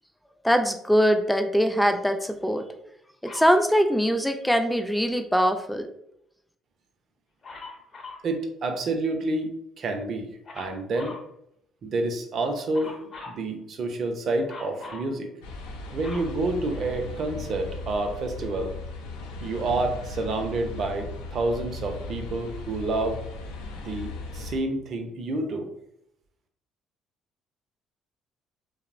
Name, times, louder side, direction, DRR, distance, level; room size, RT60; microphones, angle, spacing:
voice 1, 0.4-2.7 3.2-5.9, equal, 5° left, 6 dB, 0.4 m, -22 dB
Dog, 3.2-3.6 7.4-8.3 10.4-11.3 12.7-13.4 14.5-15.1 15.6-17.2 17.9-18.0, left 3 dB, 45° left, 0.8 m, -42 dB
voice 2, 8.2-11.2 11.8-15.3 15.9-18.8 19.4-23.2 23.8-25.7, right 2 dB, 55° right, 5 dB, 0.5 m, -29 dB
sound 1, 15.4-24.6, left 2 dB, 85° left, 0.4 m, -37 dB
2.8 x 2.0 x 2.5 m, 0.73 s
supercardioid pair, 65°, 0 cm